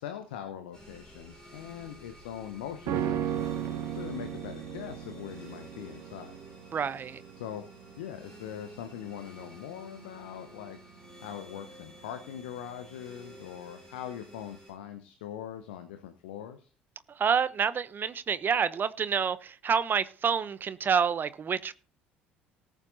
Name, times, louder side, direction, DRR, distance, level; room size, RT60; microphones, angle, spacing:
voice 1, 0.0-3.6 3.9-6.4 7.4-7.6 8.0-10.8 11.2-16.7, left 10 dB, 70° left, 1.0 m, -42 dB
sound 1, 0.7-14.7, equal, 10° left, 7.5 m, -52 dB
sound 2, 2.9-12.3 12.6-12.7, right 10 dB, 55° right, 1.2 m, -37 dB
voice 2, 6.7-7.2 17.1-21.7, right 6 dB, 35° right, 0.7 m, -28 dB
18.5 x 8.3 x 2.7 m
figure-of-eight pair, 55°, 6 cm